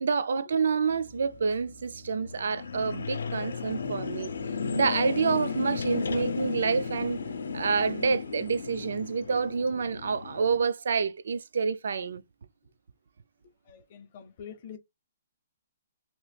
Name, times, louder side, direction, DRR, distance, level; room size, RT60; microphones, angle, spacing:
voice 1, 0.0-4.3 4.7-7.2 7.5-12.2, right 5 dB, 70° right, 0.4 m, -28 dB
sound 1, 0.9-10.6, left 5 dB, 90° left, 0.5 m, -35 dB
voice 2, 13.7-14.8, left 8 dB, 35° left, 0.6 m, -45 dB
2.9 x 2.3 x 3.2 m
hypercardioid pair, 170°, 0 cm